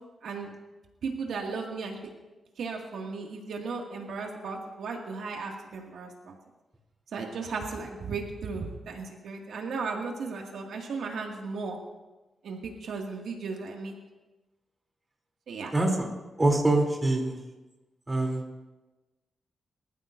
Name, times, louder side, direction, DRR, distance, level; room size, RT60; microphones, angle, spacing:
voice 1, 0.2-0.5 1.0-2.0 2.6-6.4 7.1-11.8 12.4-13.9 15.5-15.7, right 4 dB, 85° right, 0 dB, 2.1 m, -35 dB
voice 2, 15.7-16.1 16.4-17.4 18.1-18.4, right 2 dB, 20° right, 0 dB, 3.2 m, -24 dB
24.5 x 14.5 x 2.7 m, 1.1 s
cardioid pair, 110°, 0 cm